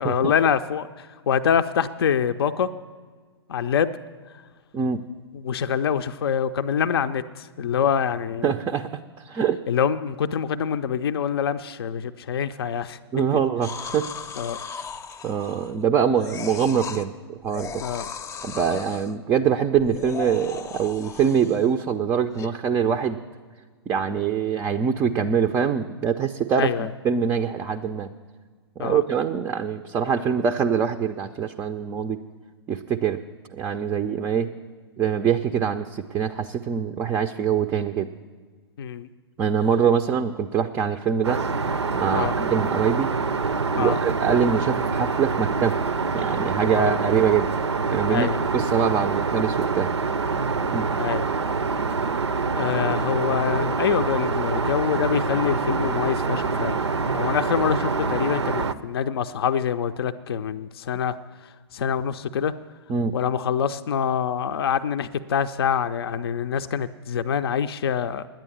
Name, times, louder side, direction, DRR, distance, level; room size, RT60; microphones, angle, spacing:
voice 1, 0.0-2.7 3.5-3.9 5.4-8.5 9.7-13.0 14.4-14.6 17.8-18.0 26.6-26.9 28.8-29.0 38.8-39.1 42.1-42.4 43.8-44.0 46.7-47.0 48.1-48.4 51.0-51.3 52.5-56.8 57.1-61.2 61.7-62.5 63.1-68.3, left 8 dB, 60° left, 10 dB, 0.5 m, -25 dB
voice 2, 8.4-9.6 13.1-14.1 14.7-14.8 15.2-17.8 18.4-23.2 23.9-28.1 28.8-32.2 32.7-33.2 33.5-34.5 35.0-38.1 39.4-41.4 41.9-43.1 43.8-45.8 46.1-47.5 47.9-49.9 50.7-50.9 62.9-63.2, right 7 dB, 15° right, 6 dB, 0.4 m, -24 dB
sound 1, 13.6-15.8 16.2-17.1 17.5-19.1 19.8-21.7 22.4-22.5, left 6 dB, 20° left, 0.7 m, -37 dB
Aircraft, 41.2-58.7, right 4 dB, 85° right, 0.5 m, -25 dB
10.5 x 9.0 x 8.5 m, 1.5 s
figure-of-eight pair, 115°, 14 cm